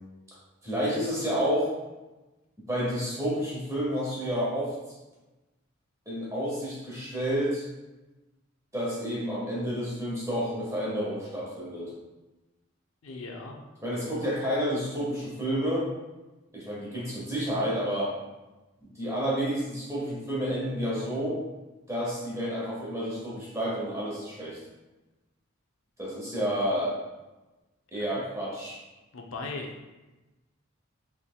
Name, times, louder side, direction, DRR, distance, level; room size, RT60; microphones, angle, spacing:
voice 1, 0.6-1.7 2.7-4.7 6.1-7.7 8.7-11.9 13.8-15.9 16.5-18.1 18.9-21.4 21.9-24.6 26.0-27.0 27.9-28.8, equal, 15° right, -6 dB, 1.3 m, -30 dB
voice 2, 13.0-13.6 28.0-28.1 29.1-29.9, left 3 dB, 80° left, 2 dB, 0.6 m, -38 dB
5.4 x 3.4 x 2.2 m, 1.1 s
head